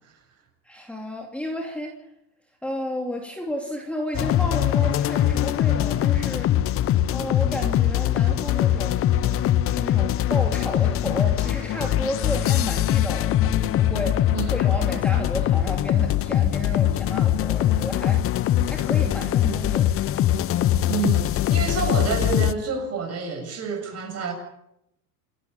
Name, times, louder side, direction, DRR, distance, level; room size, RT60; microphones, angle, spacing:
voice 1, 0.6-1.9 2.6-6.5 7.1-19.9, equal, 5° left, 2.8 m, -32 dB
sound 1, 4.1-22.5, left 12 dB, 30° left, 0.7 m, -22 dB
voice 2, 20.9-24.3, right 5 dB, 30° right, 7.3 m, -28 dB
28.5 x 13.0 x 8.8 m
supercardioid pair, 135°, 49 cm